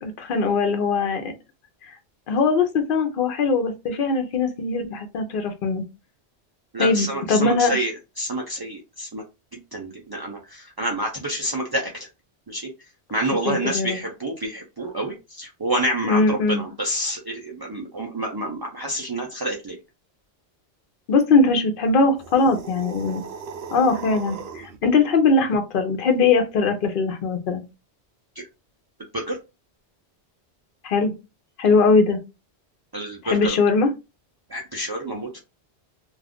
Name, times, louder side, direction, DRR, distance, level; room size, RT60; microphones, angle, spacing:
voice 1, 0.0-1.3 2.3-5.8 6.8-7.8 13.4-14.0 16.0-16.6 21.1-23.2 23.7-27.6 30.8-31.1 31.6-32.2 33.2-33.9, left 4 dB, 60° left, 6 dB, 0.8 m, -21 dB
voice 2, 6.7-9.2 9.5-11.9 12.5-12.7 13.1-19.8 29.1-29.4 32.9-33.6 34.5-35.4, right 1 dB, 35° right, 0 dB, 0.3 m, -28 dB
sound 1, 22.2-24.8, right 6 dB, 70° right, 0.8 m, -37 dB
2.4 x 2.4 x 3.5 m, 0.26 s
omnidirectional pair, 1.1 m